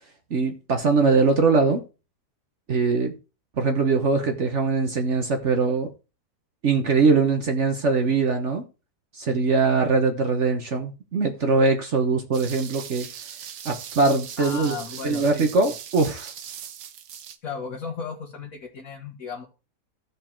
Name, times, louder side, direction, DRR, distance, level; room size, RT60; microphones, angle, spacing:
voice 1, 0.3-1.8 2.7-3.1 3.6-5.9 6.6-8.6 9.1-13.1 13.6-16.3, right 4 dB, 45° right, 1.3 m, -22 dB
sound 1, 12.3-17.4, right 9 dB, 85° right, 1.5 m, -39 dB
voice 2, 14.4-15.5 17.4-19.4, left 5 dB, 55° left, 1.9 m, -35 dB
14.5 x 5.0 x 4.5 m
omnidirectional pair, 1.8 m